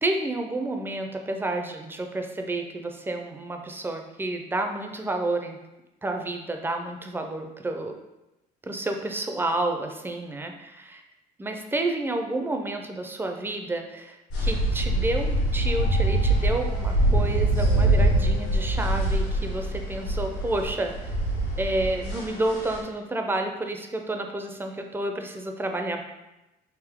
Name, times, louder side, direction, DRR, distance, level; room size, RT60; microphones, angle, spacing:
voice 1, 0.0-5.6 6.0-8.0 8.6-11.0 11.4-21.1 21.6-26.0, right 2 dB, 10° right, 4 dB, 0.4 m, -30 dB
sound 1, 14.3-22.8, right 1 dB, 75° left, 1.3 m, -24 dB
3.6 x 2.7 x 3.4 m, 0.97 s
cardioid pair, 110°, 17 cm